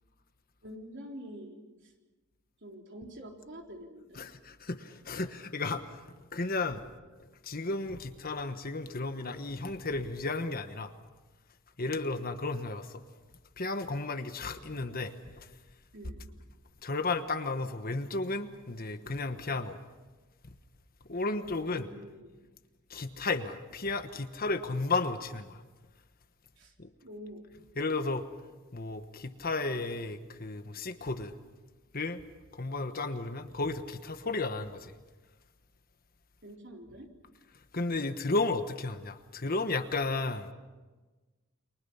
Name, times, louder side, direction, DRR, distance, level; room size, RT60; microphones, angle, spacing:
voice 1, 0.6-1.6 2.6-4.2 15.9-16.3 21.6-22.3 26.6-26.7 27.0-27.4 36.4-37.1, equal, 55° right, 4.0 m, -46 dB
voice 2, 4.1-6.0 6.3-6.8 7.2-10.9 11.8-13.0 13.6-15.5 16.8-19.8 20.4-20.5 21.1-21.9 22.9-25.6 26.8-26.9 27.8-28.3 28.7-31.3 31.9-32.2 32.5-34.9 37.7-40.5, left 3 dB, 45° left, 1.3 m, -33 dB
29.5 x 24.0 x 5.7 m
head